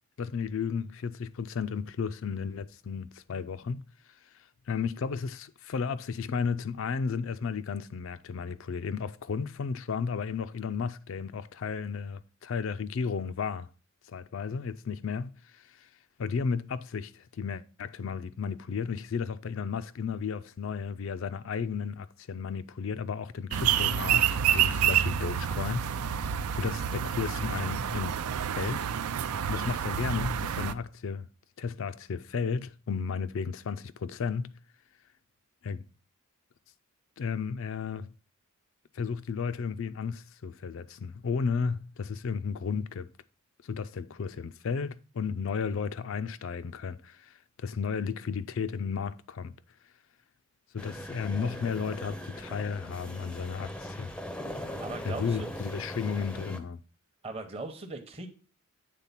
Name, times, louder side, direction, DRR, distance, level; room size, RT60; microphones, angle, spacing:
voice 1, 0.2-3.8 4.3-13.7 14.1-15.9 16.2-28.2 28.6-28.9 29.5-31.3 31.6-34.5 35.6-35.8 37.2-38.1 38.9-43.1 43.6-49.5 50.7-54.1 55.0-56.8, left 5 dB, 60° left, 0.4 m, -33 dB
sound 1, 23.5-30.7, right 9 dB, 80° right, 0.4 m, -28 dB
sound 2, 50.8-56.6, equal, 5° left, 0.5 m, -40 dB
voice 2, 54.8-55.4 57.2-58.3, right 3 dB, 25° right, 0.8 m, -39 dB
8.3 x 3.8 x 5.6 m
head